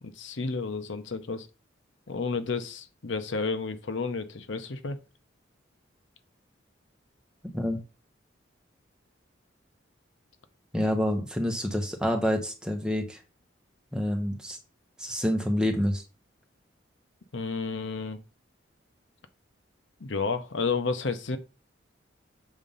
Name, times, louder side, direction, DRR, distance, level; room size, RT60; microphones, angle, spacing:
voice 1, 0.0-1.5 2.1-5.0 17.3-18.2 20.0-21.4, left 4 dB, 80° left, 0.8 m, -31 dB
voice 2, 7.4-7.8 10.7-13.2 13.9-14.6 15.0-16.0, equal, 5° right, 1.2 m, -27 dB
7.1 x 3.8 x 5.5 m
head